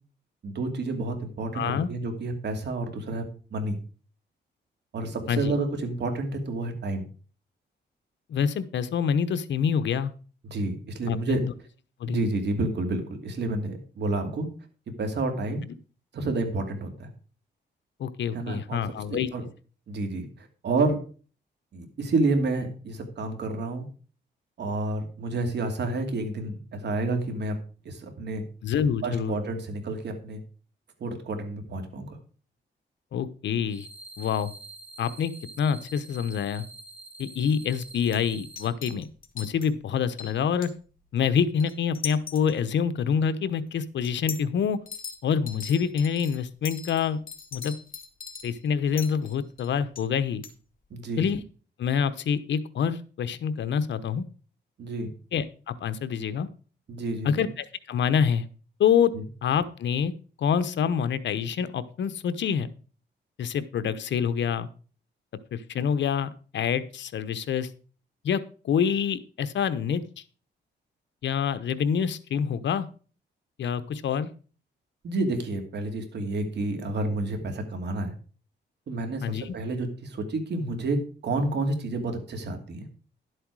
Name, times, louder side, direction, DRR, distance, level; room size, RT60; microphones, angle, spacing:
voice 1, 0.4-3.3 3.5-3.8 4.9-7.0 10.4-11.4 12.1-14.5 15.0-15.6 16.1-17.1 18.3-18.8 19.1-19.4 19.9-21.0 21.7-23.9 24.6-27.6 27.8-28.4 29.0-30.4 31.0-32.2 50.9-51.3 54.8-55.1 56.9-57.5 59.1-59.2 75.0-78.1 78.9-82.9, right 2 dB, 65° right, 5 dB, 2.6 m, -29 dB
voice 2, 1.5-1.9 5.3-5.5 8.3-10.1 11.1-11.4 12.0-12.2 18.0-19.3 28.6-29.4 33.1-33.9 34.2-34.5 35.0-36.6 37.2-39.1 39.3-40.7 41.1-44.8 45.2-47.2 47.5-47.7 48.4-50.4 51.2-51.4 51.8-54.2 55.3-56.5 57.2-58.5 58.8-59.1 59.4-60.1 60.4-62.7 63.4-64.7 65.5-67.7 68.2-68.4 68.6-70.0 71.2-72.9 73.6-74.3 79.2-79.5, left 7 dB, 75° left, 13 dB, 0.9 m, -26 dB
sound 1, 33.7-38.7, right 3 dB, 5° right, 1.7 m, -46 dB
sound 2, 37.5-37.6 37.8-38.2 38.6-39.7 40.2-40.7 41.6-42.6 43.1-43.2 44.0-44.4 44.9-45.2 45.5-50.0 50.4-50.5, left 6 dB, 50° left, 2.3 m, -40 dB
11.5 x 7.9 x 4.8 m, 0.38 s
cardioid pair, 105°, 19 cm